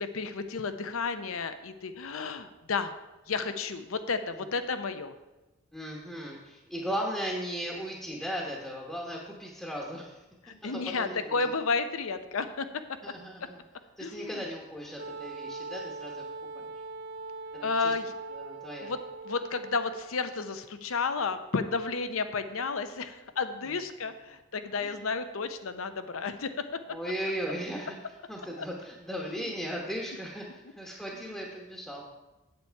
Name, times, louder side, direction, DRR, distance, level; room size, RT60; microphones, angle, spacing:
voice 1, 0.0-2.9 3.3-5.1 10.4-12.7 14.0-14.4 17.6-18.1 18.8-19.0 19.2-26.7 28.6-28.7 29.2-29.5 31.3-31.4, left 4 dB, 80° left, 10 dB, 0.7 m, -32 dB
voice 2, 5.7-10.2 11.0-11.4 13.0-13.6 14.0-16.2 16.5-16.7 17.5-17.9 18.3-18.9 23.6-23.7 24.8-25.0 26.9-27.9 28.3-32.0, equal, ahead, -3 dB, 1.0 m, -37 dB
Wind instrument woodwind instrument, 15.0-20.1, right 3 dB, 50° right, 0.6 m, -41 dB
8.1 x 8.1 x 4.6 m, 1.0 s
head